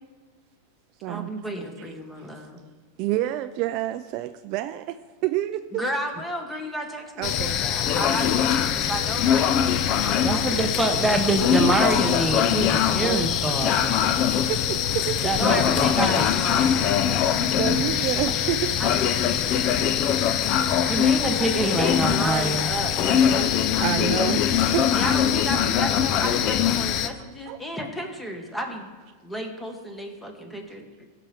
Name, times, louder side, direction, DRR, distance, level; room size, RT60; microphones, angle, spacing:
voice 1, 1.1-2.6 5.7-11.5 15.3-17.5 18.8-20.2 20.5-23.5 24.9-28.9 29.2-31.1, equal, 10° left, 1.7 m, -33 dB
voice 2, 3.0-5.8 7.2-7.6 13.0-13.5 14.3-15.3 17.5-18.7 19.5-19.9 23.3-24.9 25.6-25.8 27.5-27.6, right 14 dB, 50° right, 0.4 m, -29 dB
sound 1, 7.2-27.1, left 9 dB, 45° left, 0.6 m, -22 dB
voice 3, 10.2-14.2 15.2-16.3 17.9-18.0 20.9-22.7, right 2 dB, 10° right, 1.0 m, -25 dB
16.0 x 5.8 x 3.6 m
hypercardioid pair, 120°, 0 cm